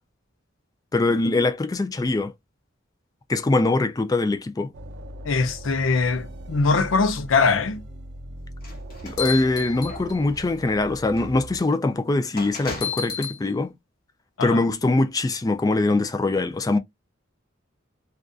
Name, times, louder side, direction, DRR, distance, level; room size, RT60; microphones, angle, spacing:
voice 1, 0.9-2.3 3.3-4.7 9.0-13.7 14.4-16.8, left 2 dB, 20° left, 0.3 m, -22 dB
sound 1, 4.7-11.6, right 1 dB, 60° right, 0.5 m, -40 dB
voice 2, 5.2-7.8 14.4-14.6, left 4 dB, 80° left, 0.5 m, -22 dB
sound 2, 8.6-10.4 11.2-11.3 12.4-13.4, left 6 dB, 50° left, 1.0 m, -32 dB
2.5 x 2.3 x 2.3 m
head